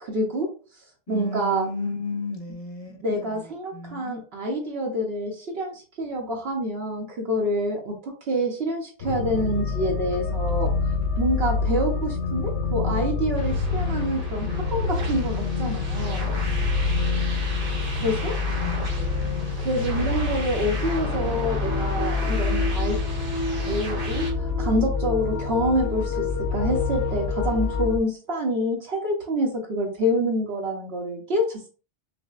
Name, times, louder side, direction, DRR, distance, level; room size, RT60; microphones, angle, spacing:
voice 1, 0.0-0.5 1.1-1.7 3.0-10.7 11.2-16.2 17.9-18.4 19.6-23.0 23.6-31.7, equal, 65° right, -1 dB, 1.0 m, -27 dB
voice 2, 1.1-3.4 3.7-4.2 18.6-19.3, left 2 dB, 40° left, 2 dB, 0.6 m, -34 dB
sound 1, 9.0-28.0, left 4 dB, 85° left, 1.0 m, -26 dB
sound 2, 13.3-24.3, right 2 dB, 40° right, 0.8 m, -36 dB
5.8 x 2.1 x 2.4 m, 0.37 s
omnidirectional pair, 1.1 m